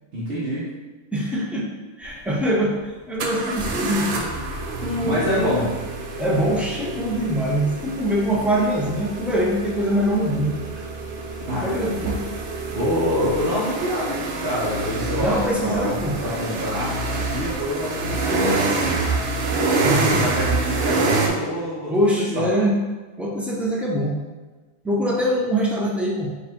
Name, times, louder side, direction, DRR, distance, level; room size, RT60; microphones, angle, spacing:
voice 1, 0.1-0.7 5.0-5.7 11.4-11.8 12.7-19.0 20.1-22.5, equal, 55° right, -9 dB, 1.1 m, -26 dB
voice 2, 1.1-1.7 2.0-2.8 3.1-4.2 4.8-5.6 6.2-10.6 11.6-12.2 15.2-16.2 19.8-20.3 21.9-22.8 23.2-24.2 24.8-26.3, equal, ahead, -4 dB, 0.4 m, -23 dB
sound 1, 2.0-2.1 3.2-21.3, right 3 dB, 85° right, 1.0 m, -27 dB
4.1 x 2.5 x 4.2 m, 1.2 s
omnidirectional pair, 1.2 m